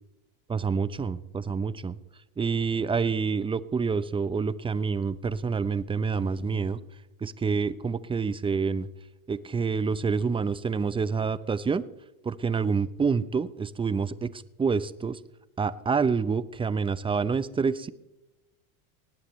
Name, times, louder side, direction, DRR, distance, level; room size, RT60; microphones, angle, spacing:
voice 1, 0.5-2.0 2.4-6.8 7.2-8.9 9.3-11.8 12.2-15.2 15.6-17.9, right 5 dB, 10° right, 16 dB, 0.6 m, -27 dB
19.5 x 17.5 x 3.1 m, 0.95 s
supercardioid pair, 110°, 43 cm